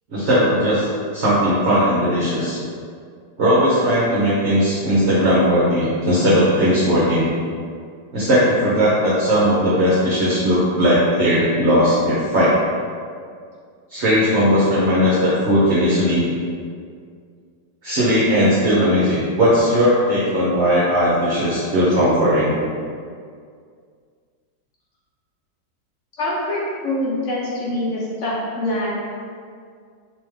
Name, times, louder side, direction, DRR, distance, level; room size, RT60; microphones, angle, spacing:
voice 1, 0.1-0.9 1.1-2.6 3.4-7.3 8.1-12.5 13.9-16.2 17.8-22.6, equal, 55° right, -9 dB, 0.9 m, -17 dB
voice 2, 26.2-28.9, left 1 dB, 60° left, -7 dB, 0.8 m, -24 dB
3.4 x 3.0 x 3.1 m, 2.2 s
omnidirectional pair, 1.9 m